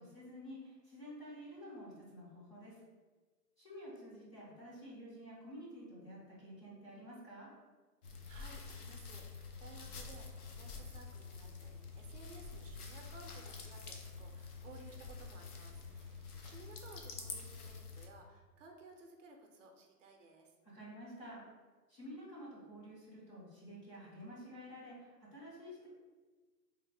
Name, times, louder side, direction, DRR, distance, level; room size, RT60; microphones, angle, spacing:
voice 1, 0.0-2.8 3.6-7.5 20.7-21.4 21.9-25.9, equal, 20° left, -8 dB, 0.5 m, -50 dB
sound 1, 8.0-18.1, left 4 dB, 65° left, 0.7 m, -48 dB
voice 2, 8.1-20.5, right 3 dB, 50° right, 3 dB, 0.5 m, -57 dB
3.4 x 2.0 x 3.2 m, 1.3 s
hypercardioid pair, 145°, 49 cm